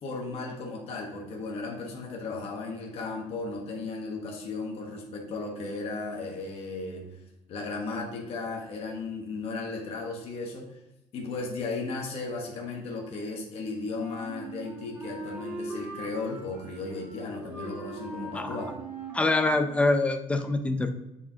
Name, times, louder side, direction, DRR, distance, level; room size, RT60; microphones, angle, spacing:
voice 1, 0.0-7.1 7.5-10.8 11.1-18.7, left 3 dB, 55° left, 0 dB, 1.2 m, -35 dB
Wind instrument woodwind instrument, 13.9-19.7, right 1 dB, 10° right, 1.8 m, -41 dB
voice 2, 19.1-20.9, left 2 dB, 10° left, 8 dB, 0.5 m, -25 dB
8.4 x 4.9 x 2.8 m, 0.94 s
cardioid pair, 155°, 12 cm